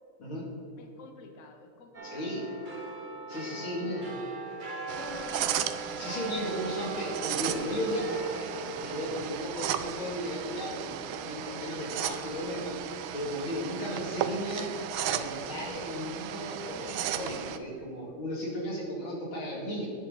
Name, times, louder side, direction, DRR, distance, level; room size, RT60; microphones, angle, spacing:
voice 1, 0.8-2.8 3.4-4.1 5.0-5.8, left 3 dB, 50° left, 5 dB, 1.1 m, -47 dB
sound 1, 1.9-12.7 13.1-13.2, right 3 dB, 35° right, 0.8 m, -42 dB
voice 2, 2.0-2.5 3.3-4.1 6.0-12.8 13.1-19.9, equal, 80° left, -3 dB, 3.2 m, -35 dB
sound 2, 4.9-17.6, right 10 dB, 85° right, 1.4 m, -35 dB
11.0 x 9.9 x 3.9 m, 2.7 s
omnidirectional pair, 2.2 m